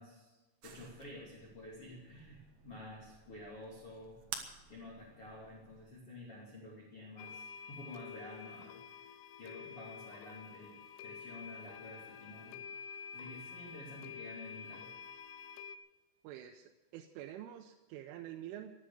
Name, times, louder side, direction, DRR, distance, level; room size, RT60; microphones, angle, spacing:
voice 1, 0.0-4.2 4.7-8.8 9.4-10.8 11.0-12.6 13.1-14.9, left 1 dB, 35° left, -5 dB, 2.9 m, -50 dB
sound 1, 0.6-5.9, right 7 dB, 65° right, 2.9 m, -51 dB
sound 2, 7.2-15.8, left 6 dB, 80° left, 2.5 m, -49 dB
voice 2, 16.2-18.7, right 12 dB, 90° right, 4 dB, 3.2 m, -47 dB
16.0 x 11.5 x 6.8 m, 1.1 s
omnidirectional pair, 5.6 m